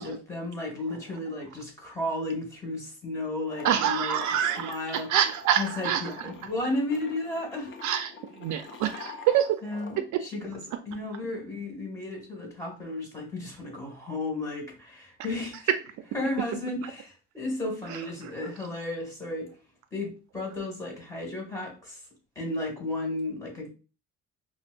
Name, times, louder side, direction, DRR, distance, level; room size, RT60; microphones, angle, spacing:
voice 1, 0.0-5.1 5.6-7.7 9.6-10.6 10.9-15.7 16.1-19.5 19.9-22.0 22.4-23.7, left 2 dB, 10° left, 0 dB, 2.0 m, -33 dB
sound 1, 3.4-10.0, left 5 dB, 40° left, 0.7 m, -45 dB
voice 2, 3.6-6.3 7.8-9.6 10.1-10.2 17.9-18.3, right 10 dB, 70° right, 10 dB, 0.5 m, -27 dB
5.6 x 2.2 x 2.5 m, 0.34 s
cardioid pair, 100°, 30 cm